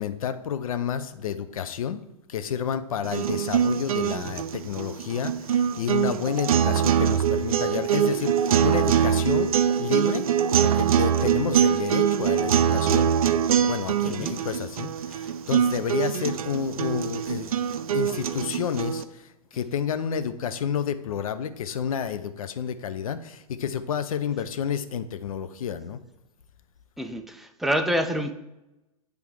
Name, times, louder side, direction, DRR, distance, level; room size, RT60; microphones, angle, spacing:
voice 1, 0.0-2.0 2.3-10.3 10.6-13.1 13.5-17.5 17.9-26.0, left 8 dB, 70° left, 10 dB, 0.6 m, -30 dB
sound 1, 3.0-19.0, right 9 dB, 75° right, 0.5 m, -24 dB
voice 2, 14.0-14.4 27.0-28.3, equal, ahead, 6 dB, 0.4 m, -27 dB
8.4 x 3.4 x 4.6 m, 0.96 s
hypercardioid pair, 105°, 18 cm